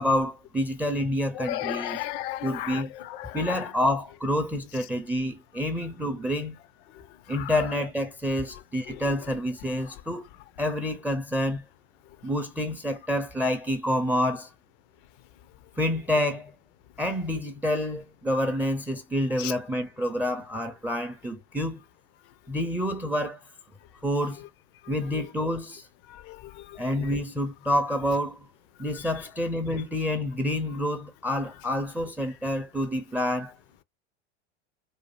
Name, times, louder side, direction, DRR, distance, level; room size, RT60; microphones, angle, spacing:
voice 1, 0.0-2.0 2.4-2.9 3.3-6.6 7.3-10.3 10.6-11.6 12.2-14.5 15.8-16.5 17.0-21.8 22.5-23.4 24.0-24.4 24.9-25.9 26.8-28.5 28.8-33.6, left 1 dB, 5° right, 0.5 m, -28 dB
voice 2, 1.4-2.8 3.1-3.6 7.3-7.5 19.4-19.5 26.1-26.8, left 14 dB, 50° left, 0.5 m, -34 dB
2.7 x 2.3 x 3.2 m
hypercardioid pair, 85°, 36 cm